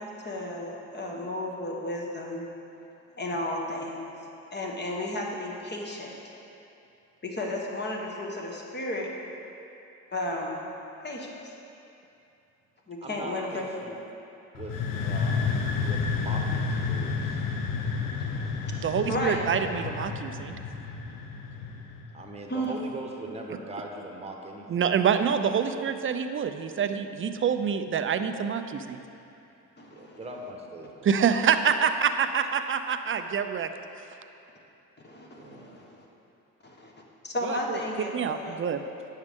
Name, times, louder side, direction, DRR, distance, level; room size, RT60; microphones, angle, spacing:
voice 1, 0.0-2.5 3.2-4.1 4.5-6.1 7.2-9.1 10.1-10.6 11.0-11.5 12.9-13.9 18.2-19.7 22.5-22.8 29.8-30.2 35.0-36.1 36.6-36.9 37.2-38.6, left 1 dB, 30° left, -1 dB, 1.4 m, -33 dB
voice 2, 13.0-14.0 14.5-17.4 22.1-24.7 29.9-31.1 35.3-35.8, right 2 dB, 15° right, 1 dB, 1.1 m, -41 dB
sound 1, 14.5-22.2, left 5 dB, 65° left, 0.8 m, -30 dB
voice 3, 18.8-20.6 24.7-29.0 31.0-33.7 37.4-37.6 38.1-38.8, right 7 dB, 35° right, 9 dB, 0.5 m, -26 dB
9.5 x 6.4 x 3.6 m, 2.8 s
supercardioid pair, 70°, 35 cm